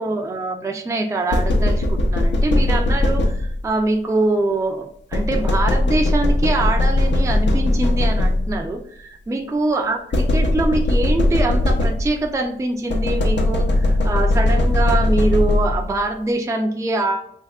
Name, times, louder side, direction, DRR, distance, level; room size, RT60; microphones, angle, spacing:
voice 1, 0.0-17.2, right 2 dB, 15° right, 3 dB, 0.3 m, -23 dB
sound 1, 1.3-3.8 5.1-8.7 10.1-12.3 12.9-16.0, left 1 dB, 65° left, 0.6 m, -19 dB
3.4 x 3.4 x 2.3 m, 0.66 s
wide cardioid pair, 145°, 20 cm